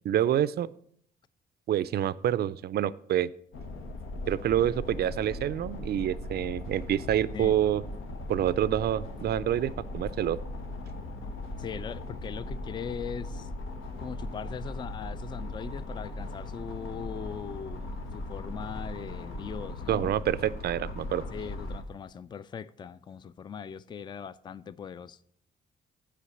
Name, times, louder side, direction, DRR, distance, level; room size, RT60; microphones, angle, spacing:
voice 1, 0.1-0.7 1.7-3.3 4.3-7.8 8.3-10.4 19.9-21.2, right 11 dB, 55° right, 0.4 m, -27 dB
sound 1, 3.5-21.8, left 2 dB, 85° left, 1.2 m, -38 dB
voice 2, 11.6-13.5 14.0-20.2 21.3-25.2, left 7 dB, 25° left, 0.3 m, -40 dB
8.4 x 5.0 x 7.0 m
cardioid pair, 90°, 20 cm